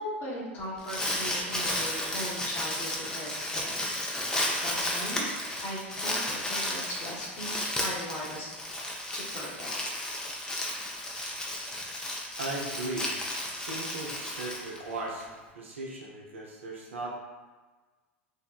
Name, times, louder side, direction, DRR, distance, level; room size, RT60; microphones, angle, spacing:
voice 1, 0.0-3.7 4.5-8.5 9.1-9.7, equal, 35° left, -4 dB, 0.9 m, -38 dB
Crumpling crinkling, 0.6-15.2, left 1 dB, 10° left, 0.4 m, -33 dB
voice 2, 12.3-13.1 13.5-15.3 15.5-17.1, right 2 dB, 80° right, -3 dB, 0.5 m, -37 dB
2.7 x 2.0 x 2.3 m, 1.3 s
hypercardioid pair, 90°, 7 cm